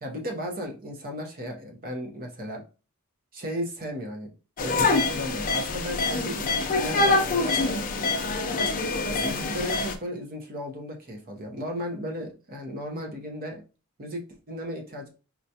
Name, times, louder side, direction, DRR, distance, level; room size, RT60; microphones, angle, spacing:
voice 1, 0.0-2.6 3.3-4.3 4.6-7.9 9.0-13.6 14.0-15.1, equal, 40° right, 3 dB, 0.8 m, -35 dB
sound 1, 4.6-10.0, left 3 dB, 40° left, 0.4 m, -25 dB
4.4 x 2.3 x 2.7 m, 0.34 s
head